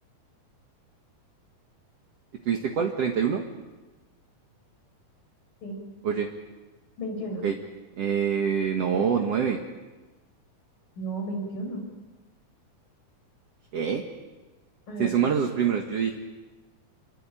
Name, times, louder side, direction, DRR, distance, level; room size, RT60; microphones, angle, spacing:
voice 1, 2.5-3.4 6.0-6.3 7.4-7.6 8.0-9.6 13.7-14.0 15.0-16.2, right 7 dB, 55° right, 3 dB, 2.5 m, -25 dB
voice 2, 7.0-7.4 8.9-9.4 11.0-11.8 14.9-15.1, right 1 dB, 75° left, 3 dB, 8.1 m, -33 dB
28.5 x 22.5 x 9.0 m, 1.2 s
omnidirectional pair, 3.9 m